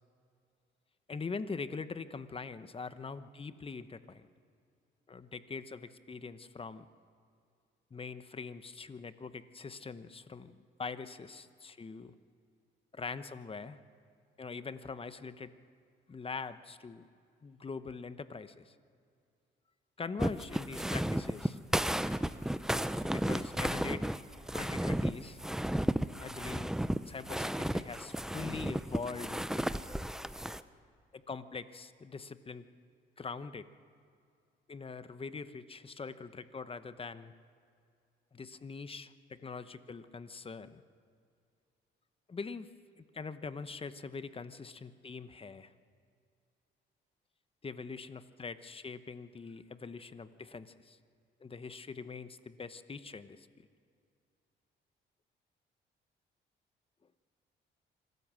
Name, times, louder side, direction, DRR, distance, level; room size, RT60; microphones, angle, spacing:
voice 1, 1.1-4.3 5.1-6.9 7.9-12.1 12.9-13.8 14.4-15.5 16.1-17.1 17.4-18.7 20.0-21.6 23.0-24.1 24.5-25.4 26.2-26.7 27.1-29.8 31.1-32.7 33.2-33.7 34.7-37.3 38.3-40.8 42.3-42.7 43.0-45.7 47.6-51.0 51.4-53.5, left 4 dB, 30° left, 12 dB, 0.9 m, -43 dB
sound 1, 20.2-30.6, right 1 dB, 5° right, 0.6 m, -33 dB
25.5 x 13.5 x 7.5 m, 2.4 s
cardioid pair, 90°, 20 cm